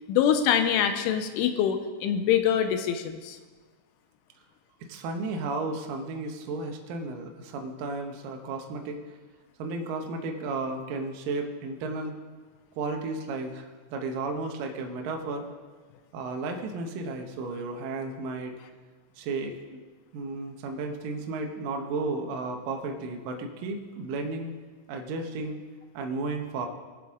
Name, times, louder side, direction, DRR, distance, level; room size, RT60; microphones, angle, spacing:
voice 1, 0.1-3.4, left 9 dB, 85° left, 8 dB, 3.2 m, -24 dB
voice 2, 4.9-9.0 9.6-12.1 12.8-15.5 16.1-18.6 19.2-19.8 20.1-24.5 24.9-25.6 25.9-26.7, right 3 dB, 85° right, 3 dB, 1.9 m, -33 dB
20.5 x 7.6 x 3.6 m, 1.4 s
omnidirectional pair, 5.5 m